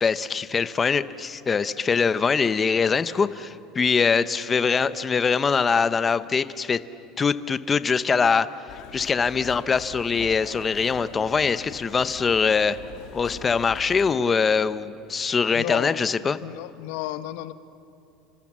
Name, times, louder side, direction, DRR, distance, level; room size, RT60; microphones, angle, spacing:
voice 1, 0.0-6.8 7.2-8.5 8.9-12.8 13.1-16.4, left 5 dB, 15° left, 14 dB, 0.6 m, -23 dB
sound 1, 8.7-14.2, left 9 dB, 55° left, 1.6 m, -42 dB
voice 2, 15.5-16.0 16.4-17.5, left 14 dB, 70° left, 11 dB, 1.1 m, -32 dB
30.0 x 26.0 x 7.4 m, 2.6 s
cardioid pair, 175°, 0 cm